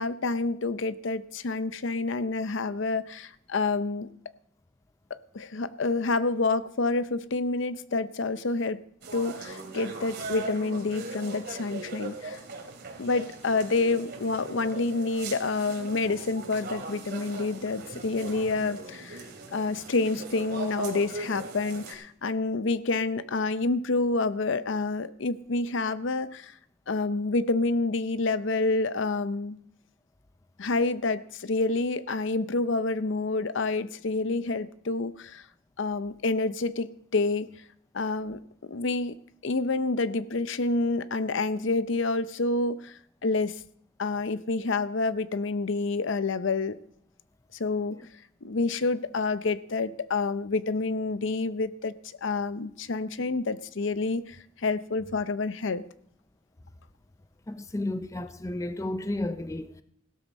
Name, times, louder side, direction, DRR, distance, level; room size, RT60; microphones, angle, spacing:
voice 1, 0.0-4.1 5.1-8.8 9.1-12.4 13.0-19.2 19.5-26.5 26.9-29.6 30.6-35.4 35.8-37.5 37.9-38.4 38.7-39.2 39.4-43.6 44.0-46.8 47.5-48.0 48.4-51.9 52.2-55.8, left 3 dB, 65° left, 0.6 m, -28 dB
sound 1, 9.0-21.9, right 3 dB, 50° right, 2.7 m, -39 dB
voice 2, 57.5-59.8, left 1 dB, 15° left, 0.4 m, -32 dB
16.5 x 12.5 x 4.2 m
head